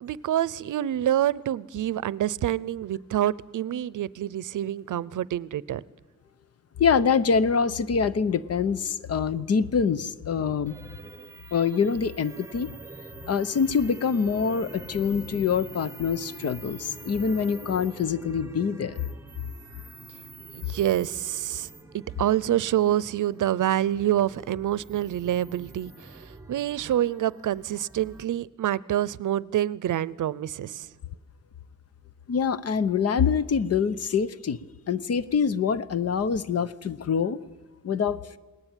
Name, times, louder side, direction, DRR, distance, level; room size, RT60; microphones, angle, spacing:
voice 1, 0.0-5.8 20.5-21.7 21.9-30.9, right 12 dB, 85° right, 20 dB, 0.7 m, -27 dB
voice 2, 6.8-10.8 11.5-12.7 13.3-19.0 32.3-34.6 34.9-37.4 37.8-38.4, left 6 dB, 55° left, 15 dB, 0.9 m, -25 dB
sound 1, 10.7-28.3, right 2 dB, 10° right, 1.0 m, -45 dB
28.5 x 19.0 x 9.1 m, 1.3 s
wide cardioid pair, 165°, 30 cm